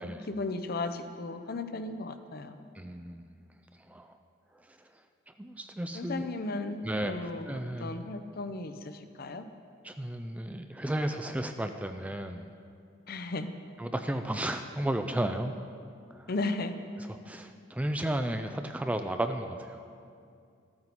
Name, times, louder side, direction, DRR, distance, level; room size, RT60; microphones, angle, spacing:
voice 1, 0.3-2.6 5.9-6.8 7.0-9.4 13.1-13.5 16.3-16.7, left 2 dB, 50° left, 9 dB, 0.6 m, -35 dB
voice 2, 2.7-3.2 3.9-4.1 4.7-4.8 5.3-6.3 6.8-8.1 9.8-12.4 13.8-15.5 16.1-16.3 17.0-19.9, right 1 dB, 5° right, 7 dB, 0.3 m, -34 dB
13.5 x 8.7 x 4.1 m, 2.4 s
head